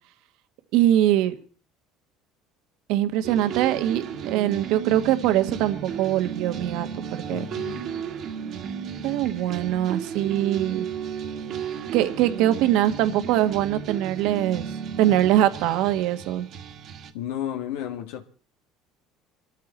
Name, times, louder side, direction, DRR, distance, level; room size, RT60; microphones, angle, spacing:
voice 1, 0.7-1.4 2.9-7.4 9.0-10.8 11.9-14.7 15.0-16.5, right 13 dB, 70° right, 1.5 m, -22 dB
sound 1, 3.2-17.1, right 7 dB, 50° right, 1.7 m, -34 dB
voice 2, 7.3-7.9 17.1-18.2, left 11 dB, 90° left, 1.7 m, -32 dB
24.0 x 13.5 x 4.3 m
cardioid pair, 130°, 0 cm